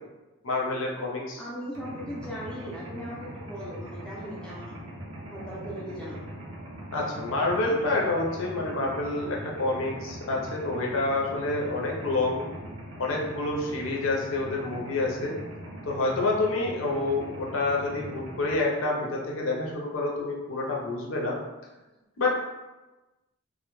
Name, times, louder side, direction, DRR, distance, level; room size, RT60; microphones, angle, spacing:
voice 1, 0.4-1.4 6.9-12.5 13.0-15.3 15.9-21.4 22.2-22.5, left 2 dB, 80° left, -2 dB, 0.5 m, -28 dB
voice 2, 1.4-4.7 5.3-6.2, equal, 5° left, -6 dB, 0.4 m, -38 dB
Mechanisms, 1.7-18.6, equal, 80° right, 0.5 m, -41 dB
2.1 x 2.0 x 3.0 m, 1.1 s
head